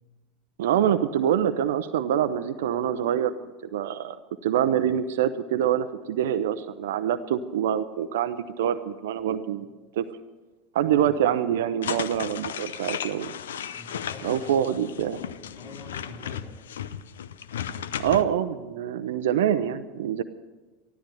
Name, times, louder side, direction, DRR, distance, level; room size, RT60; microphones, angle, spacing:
voice 1, 0.6-3.3 3.7-10.0 10.7-13.4 14.2-15.2 18.0-20.2, right 10 dB, 70° right, 10 dB, 0.7 m, -25 dB
sound 1, 11.8-18.2, left 9 dB, 75° left, 0.6 m, -35 dB
voice 2, 13.7-14.7 15.4-16.6, left 1 dB, 10° left, -1 dB, 4.1 m, -46 dB
14.0 x 13.0 x 6.9 m, 1.2 s
hypercardioid pair, 85°, 0 cm